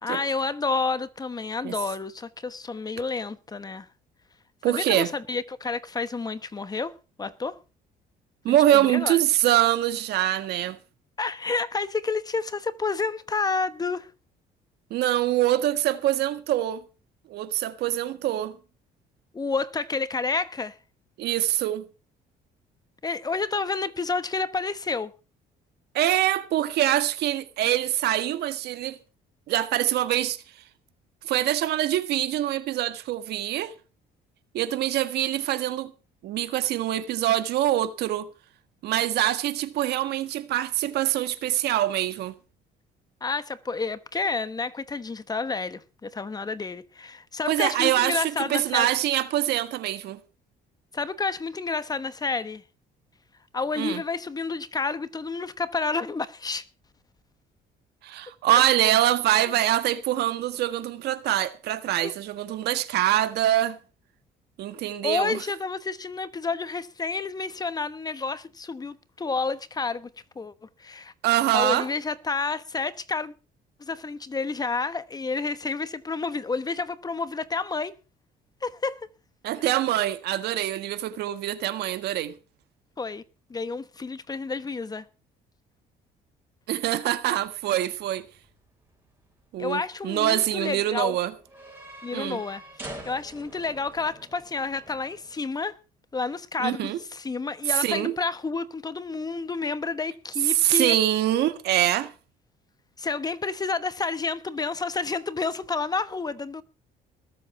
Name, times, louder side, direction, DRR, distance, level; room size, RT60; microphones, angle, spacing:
voice 1, 0.0-3.9 4.7-7.6 8.5-9.2 11.2-14.1 19.3-20.8 23.0-25.1 43.2-48.9 50.9-52.6 53.5-56.7 58.5-58.6 62.0-62.1 65.0-70.5 70.8-71.1 71.5-73.3 73.8-77.9 78.6-79.0 83.0-83.2 83.5-85.0 89.6-91.2 92.0-95.7 96.1-101.0 103.0-106.6, left 4 dB, 20° left, 1.1 m, -30 dB
voice 2, 4.6-5.1 8.4-10.8 14.9-16.8 17.3-18.6 21.2-21.9 25.9-29.0 29.5-30.4 31.2-33.7 34.5-35.9 36.2-38.3 38.8-42.3 47.5-50.2 53.8-54.0 58.0-63.8 64.6-65.4 71.2-71.9 79.4-82.3 86.7-88.3 89.5-91.3 92.1-92.4 96.6-97.0 97.7-98.2 100.5-102.1, right 13 dB, 75° right, 1.6 m, -24 dB
sound 1, 87.1-95.4, right 1 dB, 10° right, 6.5 m, -47 dB
20.0 x 7.7 x 5.9 m
cardioid pair, 110°, 17 cm